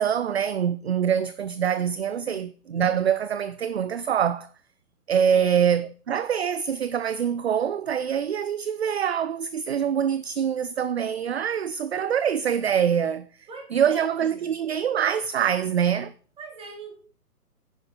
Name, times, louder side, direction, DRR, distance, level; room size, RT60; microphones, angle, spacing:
voice 1, 0.0-4.5 5.1-13.3 13.7-16.1, right 8 dB, 45° right, 0.6 m, -24 dB
voice 2, 2.1-2.5 5.3-5.6 13.5-14.5 16.4-16.9, right 4 dB, 10° right, 4.2 m, -42 dB
10.5 x 9.7 x 5.7 m
figure-of-eight pair, 135°, 46 cm